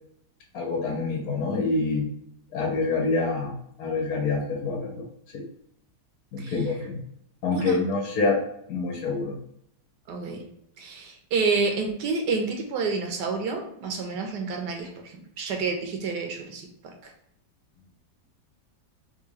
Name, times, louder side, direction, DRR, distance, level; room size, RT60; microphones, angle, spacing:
voice 1, 0.5-2.1 2.5-3.5 3.8-5.0 5.3-5.4 6.3-6.9 7.4-8.4 8.7-9.3, left 3 dB, 65° left, -1 dB, 1.1 m, -26 dB
voice 2, 10.1-10.4 10.8-17.1, right 4 dB, 70° right, 3 dB, 1.2 m, -29 dB
3.5 x 2.6 x 3.1 m, 0.74 s
omnidirectional pair, 2.0 m